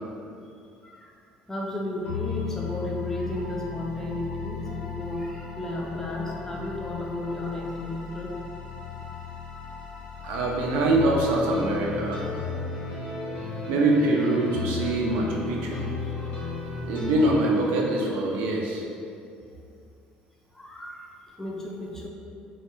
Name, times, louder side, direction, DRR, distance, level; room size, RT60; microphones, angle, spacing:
voice 1, 0.8-1.1 1.5-8.3 12.2-12.3 15.7-16.6 20.5-22.1, left 1 dB, 15° left, -2 dB, 0.4 m, -34 dB
sound 1, 2.0-17.1, left 5 dB, 85° left, 0.8 m, -35 dB
voice 2, 10.2-12.3 13.7-15.8 16.8-18.8, right 2 dB, 85° right, -1 dB, 0.4 m, -24 dB
2.2 x 2.1 x 3.1 m, 2.4 s
cardioid pair, 125°, 3 cm